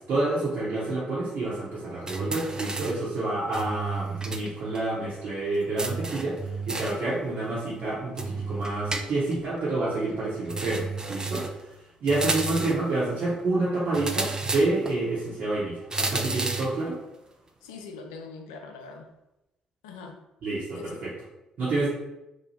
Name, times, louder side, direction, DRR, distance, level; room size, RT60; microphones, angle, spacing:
voice 1, 0.0-6.4 6.7-11.4 12.0-17.0 20.4-20.9 21.6-21.9, right 2 dB, 60° right, -9 dB, 0.9 m, -28 dB
sound 1, 2.1-3.1 3.5-4.5 4.7-4.8 5.8-7.1 8.2-9.4 10.5-11.6 12.1-12.9 13.9-15.0 15.9-16.8, right 3 dB, 20° right, 0.4 m, -31 dB
voice 2, 17.6-19.1 19.8-20.2 20.7-21.0, left 4 dB, 80° left, 4 dB, 0.3 m, -42 dB
2.8 x 2.1 x 3.1 m, 0.91 s
hypercardioid pair, 45°, 3 cm